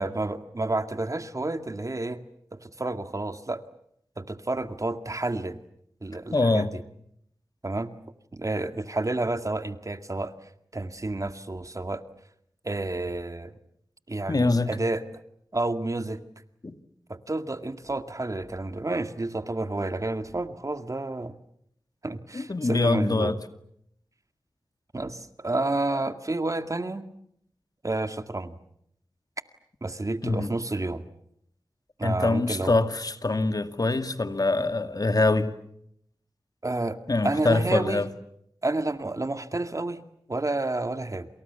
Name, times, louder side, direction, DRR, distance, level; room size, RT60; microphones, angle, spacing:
voice 1, 0.0-2.2 2.5-3.6 4.2-5.6 6.0-6.8 7.6-7.9 8.3-10.3 10.7-12.0 12.6-13.5 14.1-15.0 15.5-16.2 17.1-21.3 22.0-23.4 24.9-27.1 27.8-28.6 29.8-31.0 32.0-32.8 36.6-37.0 37.2-38.0 38.6-40.0 40.3-41.3, right 2 dB, 40° right, 2.1 m, -30 dB
voice 2, 6.3-6.7 14.3-14.7 16.6-16.8 22.3-23.4 30.2-30.5 32.0-35.5 37.1-38.1, left 2 dB, 50° left, 2.3 m, -24 dB
29.0 x 27.5 x 7.0 m
cardioid pair, 40°, 8 cm